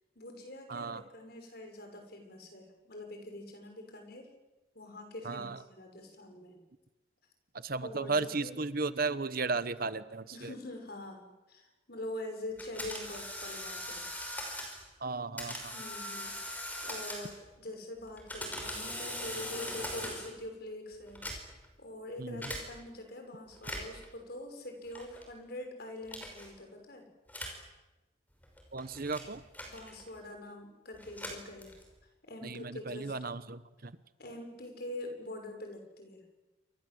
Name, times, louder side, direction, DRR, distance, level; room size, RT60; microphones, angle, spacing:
voice 1, 0.1-4.3 4.7-6.6 7.8-8.6 10.3-14.1 15.7-21.5 21.8-27.1 29.7-31.7 32.3-33.1 34.2-36.3, left 1 dB, 50° left, 4 dB, 6.3 m, -44 dB
voice 2, 0.7-1.0 5.2-5.6 7.5-10.5 15.0-15.7 22.2-22.4 28.7-29.4 32.4-33.9, right 4 dB, 45° right, 14 dB, 1.0 m, -35 dB
sound 1, 12.6-14.8 15.4-17.5 18.1-20.4 21.1-21.7 22.4-22.6 23.5-24.1 24.9-25.3 26.1-26.5 27.3-27.6 28.4-30.2 30.9-32.0, left 1 dB, 10° left, 5.7 m, -41 dB
28.5 x 25.0 x 7.9 m, 1.1 s
head